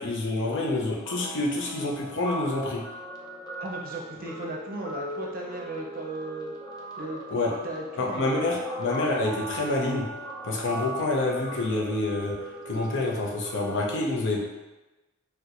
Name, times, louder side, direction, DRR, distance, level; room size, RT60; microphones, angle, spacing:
voice 1, 0.0-2.8 7.3-7.5 8.0-10.1 10.4-12.4 12.7-14.4, left 2 dB, 60° left, -1 dB, 0.6 m, -27 dB
Guitar, 1.1-13.8, equal, 20° left, 0.4 m, -39 dB
voice 2, 3.6-6.5 7.0-8.2, right 2 dB, 40° right, -2 dB, 0.6 m, -36 dB
4.2 x 2.2 x 2.5 m, 1.1 s
head